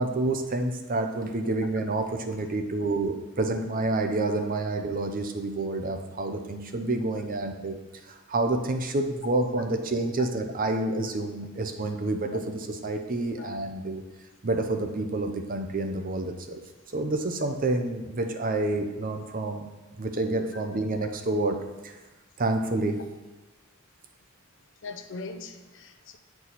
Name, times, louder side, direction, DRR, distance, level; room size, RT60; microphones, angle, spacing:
voice 1, 0.0-7.8 8.1-14.0 14.4-16.6 16.9-19.7 20.0-21.6 21.8-21.9 22.4-23.0, right 2 dB, 40° right, 5 dB, 0.7 m, -28 dB
voice 2, 24.8-26.2, left 3 dB, 65° left, 7 dB, 0.7 m, -40 dB
9.4 x 4.6 x 4.2 m, 1.1 s
head